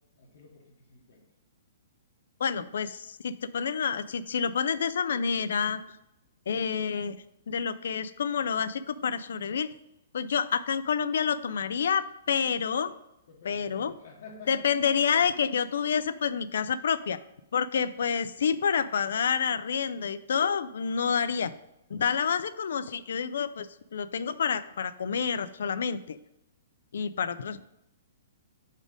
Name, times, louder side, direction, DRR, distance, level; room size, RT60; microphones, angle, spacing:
voice 1, 0.2-1.2 13.3-14.6, left 4 dB, 60° left, -2 dB, 1.1 m, -50 dB
voice 2, 2.4-5.8 6.5-7.2 7.5-9.7 10.1-12.9 13.4-13.9 14.5-17.2 17.5-21.5 21.9-23.7 23.9-26.2 26.9-27.6, left 6 dB, 75° left, 14 dB, 0.3 m, -28 dB
5.0 x 4.1 x 5.0 m, 0.85 s
hypercardioid pair, 160°, 0 cm